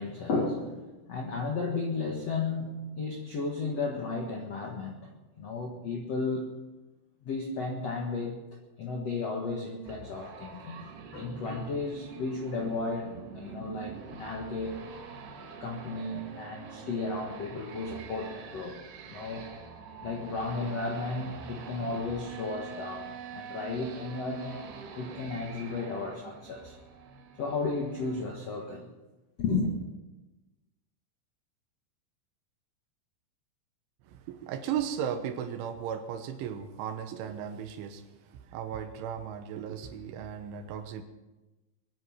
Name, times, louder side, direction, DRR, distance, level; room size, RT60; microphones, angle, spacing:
voice 1, 0.0-6.5 7.2-8.4 8.8-14.8 15.6-18.8 19.1-19.5 20.0-24.7 24.9-26.7 27.4-28.9 29.4-29.7, left 3 dB, 85° left, 1 dB, 1.4 m, -34 dB
sound 1, 9.9-28.2, right 6 dB, 60° right, 3.3 m, -45 dB
voice 2, 34.1-38.0 38.3-41.0, right 8 dB, 80° right, 8 dB, 3.5 m, -36 dB
22.5 x 11.0 x 5.8 m, 1.1 s
omnidirectional pair, 5.7 m